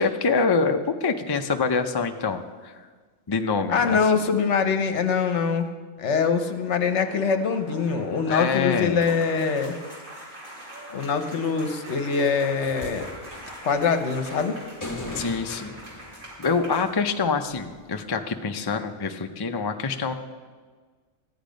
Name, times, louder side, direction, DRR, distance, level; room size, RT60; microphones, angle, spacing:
voice 1, 0.0-2.9 3.3-4.0 8.3-9.0 15.1-15.7 16.4-20.1, left 4 dB, 35° left, 6 dB, 0.4 m, -25 dB
voice 2, 3.7-5.7 6.0-9.7 10.9-13.1 13.6-14.6, left 5 dB, 60° left, 8 dB, 1.1 m, -23 dB
sound 1, 6.3-17.3, equal, 85° right, 4.2 m, -43 dB
sound 2, 12.6-17.0 18.1-18.2, left 2 dB, 15° left, 1.2 m, -39 dB
14.5 x 10.0 x 5.2 m, 1.5 s
omnidirectional pair, 1.4 m